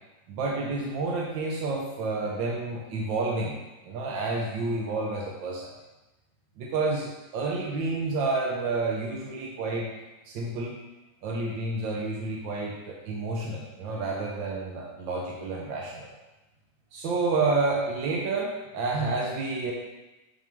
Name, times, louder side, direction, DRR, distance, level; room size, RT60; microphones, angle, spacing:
voice 1, 0.3-3.6 3.8-5.7 6.6-9.9 10.2-10.8 11.2-16.1 16.9-19.7, right 3 dB, 85° right, -2 dB, 1.6 m, -29 dB
6.5 x 6.1 x 3.6 m, 1.1 s
omnidirectional pair, 2.0 m